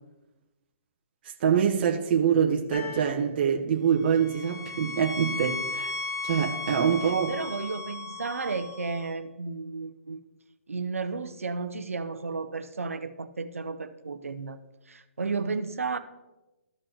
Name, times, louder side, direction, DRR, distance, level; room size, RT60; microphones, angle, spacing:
voice 1, 1.4-5.9 6.2-7.3, right 7 dB, 45° right, 0.9 m, -25 dB
sound 1, 2.7-3.2 4.0-9.1, left 3 dB, 55° left, 2.5 m, -36 dB
voice 2, 7.3-10.2 10.7-14.6 14.9-16.0, right 4 dB, 90° right, 0.6 m, -33 dB
14.0 x 5.1 x 2.8 m
hypercardioid pair, 145°, 7 cm